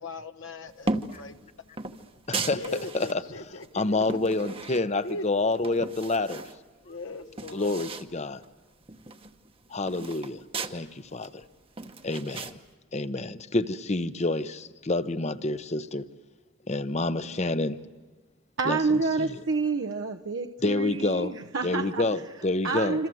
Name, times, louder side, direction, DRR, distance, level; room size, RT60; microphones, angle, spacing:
voice 1, 0.0-1.4 2.5-4.2 5.0-5.2 6.8-7.7, left 2 dB, 70° left, 1.2 m, -39 dB
sound 1, 0.8-1.2 1.8-3.2 3.6-5.2 5.5-6.6 6.9-7.0 7.2-8.1 8.4-8.5 8.8-10.8 11.2-12.5, right 3 dB, 25° right, 1.0 m, -35 dB
voice 2, 2.3-2.6 2.9-3.2 3.7-6.4 7.5-8.4 9.7-10.4 10.7-11.4 12.0-12.6 12.9-16.1 16.7-17.8 18.6-19.3 20.6-21.3 21.6-23.0, left 2 dB, 35° left, 0.8 m, -28 dB
voice 3, 18.6-22.2 22.6-23.1, right 4 dB, 70° right, 0.9 m, -28 dB
27.0 x 26.5 x 7.8 m
head